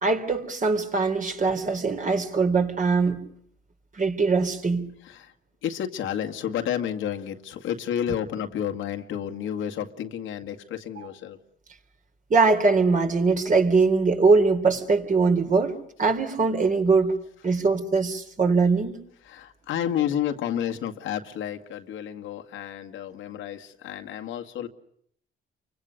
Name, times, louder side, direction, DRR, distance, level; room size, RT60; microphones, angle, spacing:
voice 1, 0.0-3.2 4.0-4.9 12.3-17.2 17.4-19.0, right 4 dB, 40° right, 3.8 m, -22 dB
voice 2, 5.6-11.4 19.2-24.7, left 9 dB, 85° left, 2.1 m, -31 dB
30.0 x 24.5 x 6.6 m
cardioid pair, 90°, 20 cm